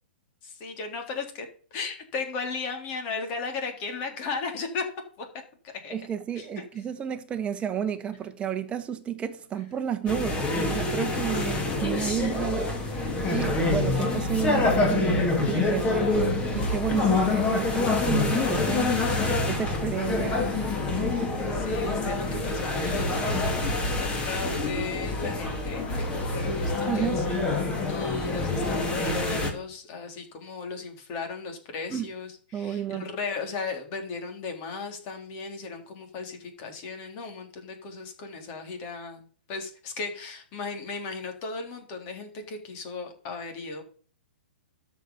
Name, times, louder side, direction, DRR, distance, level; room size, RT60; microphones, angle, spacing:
voice 1, 0.4-4.9 5.2-5.3 5.8-5.9 6.4-6.6 11.0-11.3 13.3-13.4 21.1-27.1 27.9-43.8, left 4 dB, 35° left, 3.7 m, -36 dB
voice 2, 5.9-18.9 19.5-20.4 26.9-27.2 31.9-32.1 32.5-33.0, right 8 dB, 20° right, 1.5 m, -31 dB
sound 1, 10.1-29.5, left 2 dB, 20° left, 2.6 m, -26 dB
13.0 x 5.5 x 7.1 m
figure-of-eight pair, 120°, 6 cm